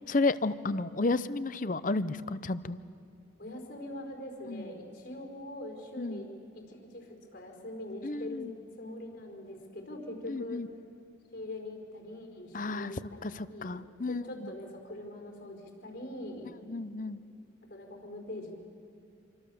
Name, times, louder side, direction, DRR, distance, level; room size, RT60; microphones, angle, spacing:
voice 1, 0.1-2.8 4.5-4.7 6.0-6.2 8.0-8.5 10.3-10.7 12.5-12.9 13.2-14.3 16.7-17.2, left 3 dB, 40° left, 15 dB, 0.6 m, -32 dB
voice 2, 3.4-6.3 6.5-8.4 8.8-10.6 11.3-13.8 14.1-16.5 17.7-18.5, left 1 dB, 60° left, 2 dB, 4.8 m, -43 dB
27.0 x 24.5 x 7.1 m, 2.5 s
head